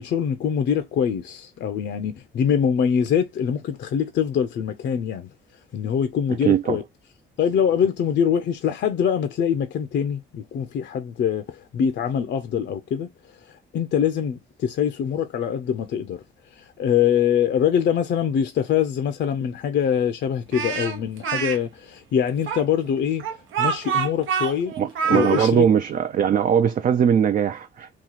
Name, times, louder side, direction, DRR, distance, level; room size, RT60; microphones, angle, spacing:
voice 1, 0.0-5.3 5.7-6.8 7.4-13.1 13.7-16.2 16.6-23.3 23.6-24.7 25.1-25.7, left 8 dB, 65° left, 0.6 m, -24 dB
voice 2, 6.4-6.8 24.8-27.9, right 8 dB, 45° right, 0.4 m, -20 dB
Speech, 20.5-21.6 22.5-25.5, right 7 dB, 80° right, 0.8 m, -26 dB
3.0 x 2.4 x 3.9 m
cardioid pair, 90°, 20 cm